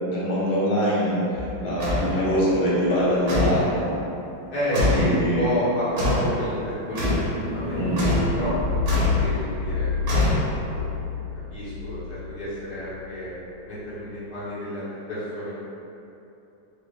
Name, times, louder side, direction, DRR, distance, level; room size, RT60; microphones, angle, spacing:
voice 1, 0.0-3.9 5.0-5.5 7.8-8.1, equal, 75° left, -7 dB, 1.9 m, -24 dB
sound 1, 1.3-3.5 5.3-13.4, left 4 dB, 80° right, 1.5 m, -30 dB
sound 2, 1.8-2.1 3.3-3.7 4.7-5.1 6.0-6.3 7.0-7.3 8.0-8.3 8.9-9.2 10.1-10.7, left 1 dB, 55° right, 1.1 m, -23 dB
voice 2, 4.5-6.5 6.9-7.1 7.4-8.6 9.2-9.9 10.3-11.1 11.5-13.3 13.6-15.5, equal, 50° left, -12 dB, 1.9 m, -30 dB
4.1 x 2.7 x 3.3 m, 2.9 s
omnidirectional pair, 2.3 m